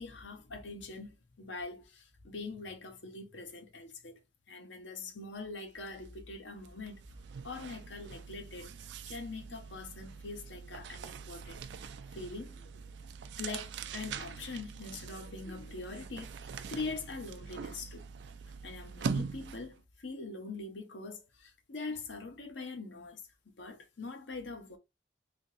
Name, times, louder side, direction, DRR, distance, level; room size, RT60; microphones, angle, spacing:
voice 1, 0.0-4.2 4.5-7.0 7.4-8.7 9.1-11.6 12.1-12.7 13.4-18.0 18.6-24.8, left 3 dB, 90° left, 0.9 m, -43 dB
sound 1, 5.9-6.1 6.4-19.8, right 5 dB, 70° right, 0.4 m, -43 dB
3.5 x 2.7 x 2.7 m
head